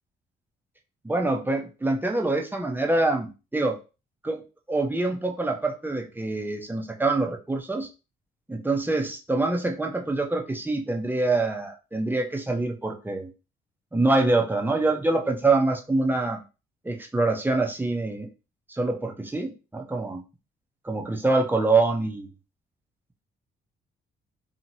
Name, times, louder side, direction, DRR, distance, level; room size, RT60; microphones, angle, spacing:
voice 1, 1.0-3.8 4.2-4.4 4.7-7.9 8.5-13.3 13.9-16.4 16.8-18.3 18.7-20.2 20.8-22.3, right 2 dB, 10° right, 2 dB, 0.6 m, -25 dB
2.9 x 2.8 x 2.7 m, 0.31 s
cardioid pair, 90°, 20 cm